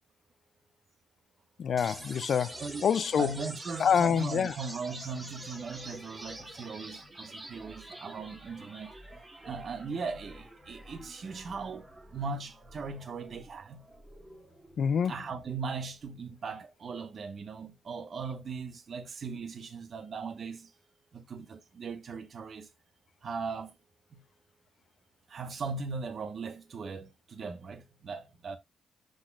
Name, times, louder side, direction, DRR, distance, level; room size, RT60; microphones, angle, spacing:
voice 1, 1.6-3.3 3.8-4.5 14.8-15.1, left 7 dB, 55° left, 0.3 m, -26 dB
sound 1, 1.8-15.8, right 1 dB, 15° right, 1.9 m, -47 dB
voice 2, 3.2-8.9 9.4-11.8 12.1-13.8 15.0-20.7 21.1-22.7 23.2-23.7 24.1-24.2 25.3-28.6, right 4 dB, 45° right, 1.1 m, -39 dB
11.5 x 4.1 x 2.4 m
cardioid pair, 120°, 0 cm